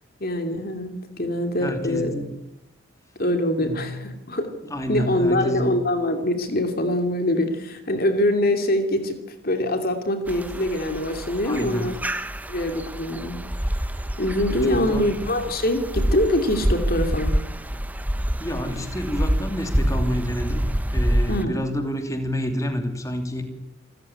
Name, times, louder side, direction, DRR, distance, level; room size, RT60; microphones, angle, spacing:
voice 1, 0.2-2.1 3.2-4.5 4.9-9.2 9.4-12.0 12.5-13.4 14.2-17.4 21.3-21.6, left 1 dB, 50° left, 6 dB, 2.8 m, -24 dB
voice 2, 1.6-2.4 3.6-4.1 4.7-5.7 11.4-11.9 14.6-15.1 18.4-23.4, equal, 15° left, 6 dB, 2.9 m, -29 dB
sound 1, 10.3-21.4, equal, 10° right, 0.9 m, -27 dB
27.5 x 14.5 x 9.9 m, 0.90 s
head